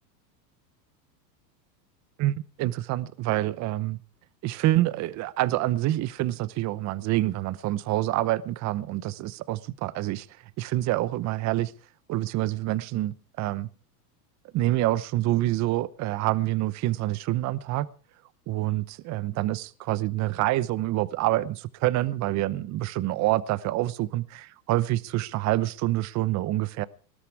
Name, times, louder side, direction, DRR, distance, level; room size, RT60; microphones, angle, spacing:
voice 1, 2.2-4.0 4.4-10.3 10.6-11.7 12.1-13.7 14.5-17.9 18.5-26.9, right 16 dB, 35° right, 17 dB, 0.9 m, -27 dB
19.5 x 13.0 x 4.8 m, 0.40 s
supercardioid pair, 120°, 49 cm